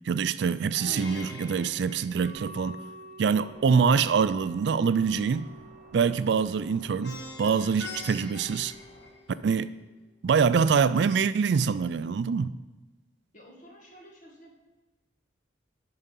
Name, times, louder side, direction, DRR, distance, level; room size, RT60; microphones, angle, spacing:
voice 1, 0.0-2.8 3.2-5.5 5.9-8.7 9.4-9.7 10.2-12.5, right 6 dB, 60° right, 0.3 m, -25 dB
Plucked string instrument, 0.7-2.9 7.0-9.6, left 2 dB, 60° left, 1.4 m, -43 dB
Wind instrument woodwind instrument, 2.2-8.0, right 2 dB, 40° right, 1.4 m, -49 dB
sound 1, 3.4-9.1, left 1 dB, 75° left, 3.3 m, -56 dB
voice 2, 13.3-14.5, equal, 40° left, 1.9 m, -51 dB
11.0 x 4.9 x 5.3 m
head